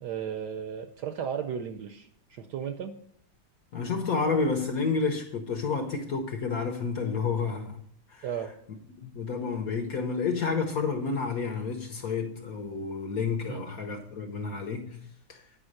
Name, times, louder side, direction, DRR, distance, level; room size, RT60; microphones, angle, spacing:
voice 1, 0.0-2.9 8.2-8.5 13.5-13.6, right 8 dB, 70° right, 1.1 m, -35 dB
voice 2, 3.7-8.2 9.0-15.0 15.3-15.4, left 4 dB, 60° left, 1.0 m, -30 dB
8.8 x 5.1 x 6.4 m
omnidirectional pair, 2.2 m